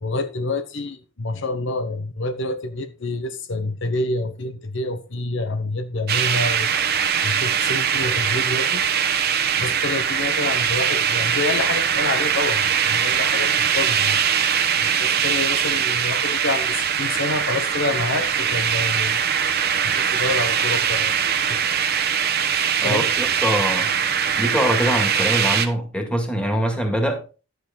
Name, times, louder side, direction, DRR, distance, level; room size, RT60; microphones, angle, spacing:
voice 1, 0.0-6.7 7.2-8.8 9.6-14.2 14.8-19.2 19.8-21.1 21.5-21.6 22.5-23.1, left 2 dB, 60° left, 0.8 m, -27 dB
sound 1, 6.1-25.7, right 8 dB, 50° right, 1.2 m, -21 dB
voice 2, 22.8-23.9 24.4-27.2, equal, 5° left, 2.2 m, -23 dB
10.5 x 8.1 x 3.9 m
head